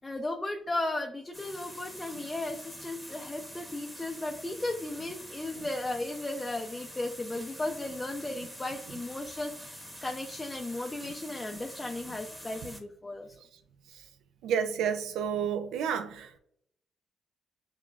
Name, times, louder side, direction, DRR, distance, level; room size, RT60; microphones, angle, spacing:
voice 1, 0.0-13.3, left 2 dB, 20° left, 0.4 m, -35 dB
sound 1, 1.3-12.8, equal, ahead, 0.9 m, -46 dB
voice 2, 14.4-16.4, right 7 dB, 85° right, 0.3 m, -30 dB
5.8 x 2.2 x 2.3 m
cardioid pair, 90°, 0 cm